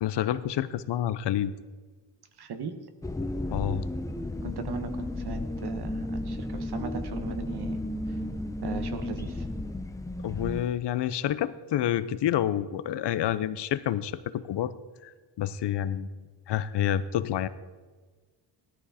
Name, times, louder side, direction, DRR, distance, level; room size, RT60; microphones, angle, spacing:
voice 1, 0.0-1.5 3.5-3.8 10.2-14.7 15.0-16.1 16.5-17.5, left 11 dB, 65° left, 14 dB, 0.7 m, -28 dB
voice 2, 2.4-2.8 4.4-7.8 8.6-9.5, right 6 dB, 60° right, 8 dB, 1.4 m, -38 dB
sound 1, 3.0-10.7, left 1 dB, 10° left, 0.6 m, -33 dB
17.0 x 13.0 x 4.2 m, 1.4 s
cardioid pair, 140°, 44 cm